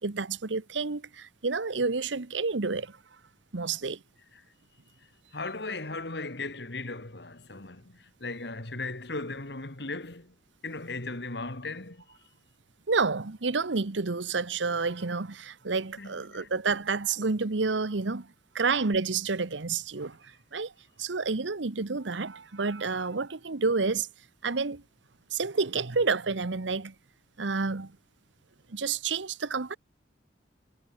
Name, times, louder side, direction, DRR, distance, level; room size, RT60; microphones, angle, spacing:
voice 1, 0.0-3.0 3.5-4.0 12.9-18.3 18.5-20.2 20.5-20.7 21.0-24.1 24.4-24.8 25.3-26.9 27.4-28.0 28.7-29.8, right 4 dB, 80° right, 1.0 m, -29 dB
voice 2, 5.3-10.3 10.6-12.0 16.0-16.5, left 3 dB, 60° left, 2.3 m, -37 dB
head